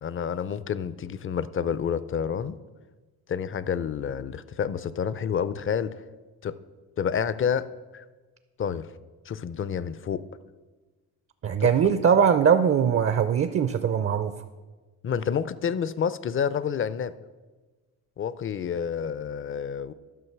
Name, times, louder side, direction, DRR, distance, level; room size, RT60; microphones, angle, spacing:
voice 1, 0.0-2.6 3.3-6.0 6.4-6.6 7.0-7.7 7.9-8.0 8.6-8.9 9.3-10.2 11.6-11.7 15.0-17.1 18.2-19.9, left 7 dB, 35° left, 16 dB, 0.5 m, -29 dB
voice 2, 11.4-14.3, right 7 dB, 35° right, 11 dB, 0.5 m, -21 dB
11.0 x 6.1 x 5.9 m, 1.3 s
cardioid pair, 95°, 38 cm